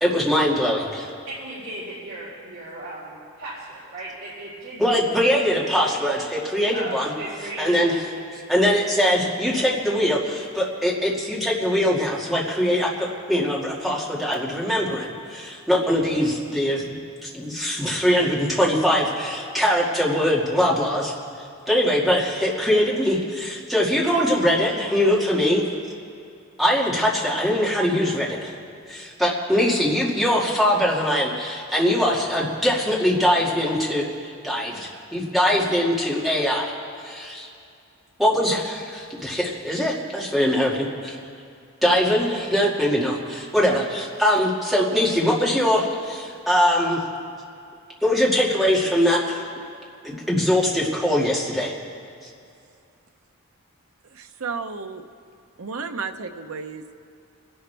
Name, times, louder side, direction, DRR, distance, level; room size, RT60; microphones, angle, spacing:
voice 1, 0.0-1.1 4.8-7.1 7.6-8.0 8.3-16.8 17.2-21.1 21.7-25.6 26.6-28.5 28.9-34.0 34.4-36.7 37.0-37.5 38.2-41.2 41.8-47.0 48.0-49.4 50.0-51.7, equal, ahead, -5 dB, 2.1 m, -22 dB
voice 2, 1.3-5.8 6.7-7.9 8.5-8.7, right 1 dB, 65° right, -10 dB, 4.5 m, -36 dB
voice 3, 54.1-55.0 55.6-56.9, right 5 dB, 90° right, 7 dB, 0.8 m, -33 dB
29.0 x 11.0 x 3.4 m, 2.4 s
head